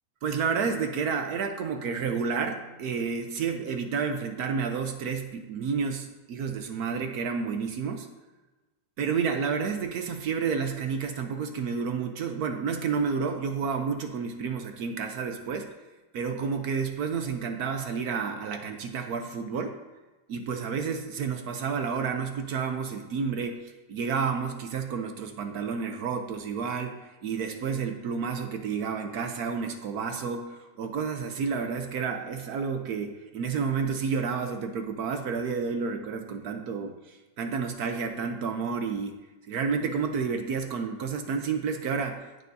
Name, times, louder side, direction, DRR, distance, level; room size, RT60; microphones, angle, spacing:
voice 1, 0.2-8.1 9.0-15.7 16.1-19.7 20.3-39.2 39.5-42.4, right 5 dB, 65° right, 6 dB, 1.1 m, -30 dB
16.5 x 6.7 x 2.7 m, 1.2 s
omnidirectional pair, 2.0 m